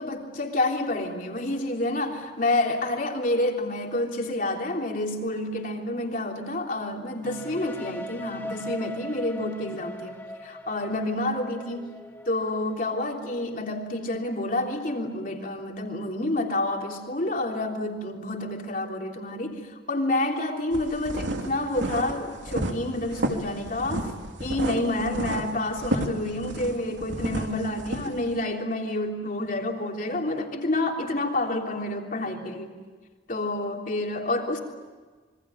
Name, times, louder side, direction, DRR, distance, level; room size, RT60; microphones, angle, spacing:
voice 1, 0.0-11.9 12.2-19.6 19.9-24.1 24.4-32.8 33.3-34.6, left 1 dB, 45° left, 1 dB, 3.4 m, -29 dB
sound 1, 7.2-15.0, left 1 dB, 10° left, 1.3 m, -41 dB
sound 2, 20.7-28.3, right 1 dB, 85° right, 2.9 m, -31 dB
27.0 x 24.0 x 8.7 m, 1.4 s
head